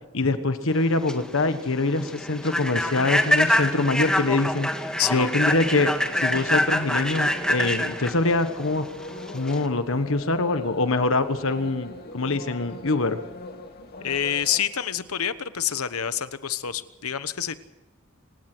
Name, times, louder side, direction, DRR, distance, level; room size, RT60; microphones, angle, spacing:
voice 1, 0.1-4.7 5.1-8.9 9.3-13.2, left 2 dB, 65° left, 10 dB, 1.4 m, -24 dB
Human voice / Train, 0.8-9.7, left 1 dB, 5° left, 2.0 m, -25 dB
voice 2, 5.0-5.3 14.0-17.5, left 9 dB, 85° left, 13 dB, 1.1 m, -27 dB
sound 1, 5.4-14.6, left 2 dB, 45° left, 2.4 m, -41 dB
26.5 x 17.0 x 6.2 m, 1.0 s
head